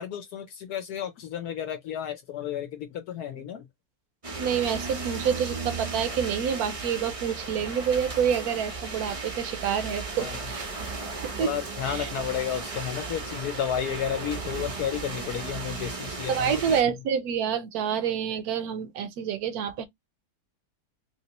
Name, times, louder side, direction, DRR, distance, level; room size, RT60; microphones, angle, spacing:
voice 1, 0.0-3.7 10.2-10.4 11.4-16.8, left 9 dB, 70° left, 1.1 m, -32 dB
sound 1, 4.2-16.8, right 4 dB, 45° right, 0.4 m, -35 dB
voice 2, 4.4-10.7 11.2-11.5 11.9-12.1 16.3-19.9, right 8 dB, 70° right, 1.0 m, -28 dB
3.0 x 2.8 x 2.8 m
omnidirectional pair, 1.8 m